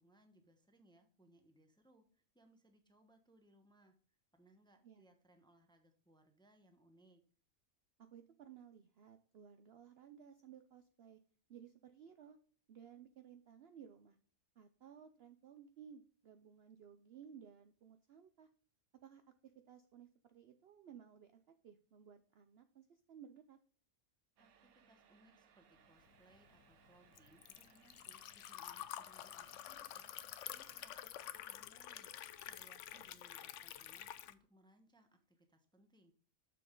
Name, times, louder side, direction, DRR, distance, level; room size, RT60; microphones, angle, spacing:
voice 1, 0.0-7.3 24.4-36.1, right 1 dB, 5° left, 5 dB, 0.7 m, -69 dB
voice 2, 8.0-11.2 11.5-12.4 12.7-14.2 14.6-18.5 19.0-23.6 32.9-33.2, right 8 dB, 60° right, 8 dB, 0.7 m, -58 dB
sound 1, 24.4-31.1, right 7 dB, 80° right, 1.3 m, -69 dB
Liquid, 26.1-34.3, left 11 dB, 65° left, 0.8 m, -49 dB
7.1 x 6.0 x 3.7 m, 0.44 s
omnidirectional pair, 1.5 m